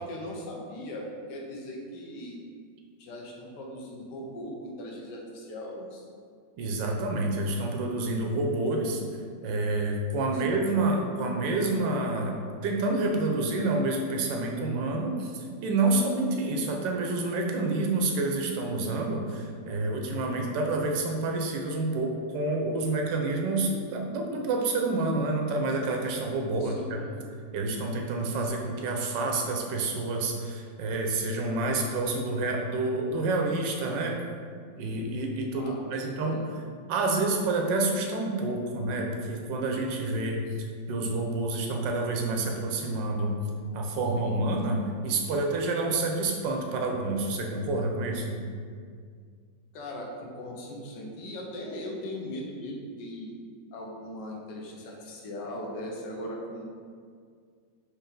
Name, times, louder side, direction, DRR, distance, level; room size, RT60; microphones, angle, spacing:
voice 1, 0.0-2.4 3.0-6.0 10.3-10.7 26.6-27.2 35.5-36.4 49.7-53.3 53.7-56.6, left 1 dB, 75° left, -2 dB, 1.3 m, -39 dB
voice 2, 6.6-9.0 9.4-27.0 27.5-34.2 34.8-36.4 36.9-40.4 40.9-43.3 43.7-48.4, right 2 dB, 85° right, 1 dB, 1.3 m, -28 dB
4.6 x 2.8 x 3.7 m, 2.1 s
omnidirectional pair, 1.9 m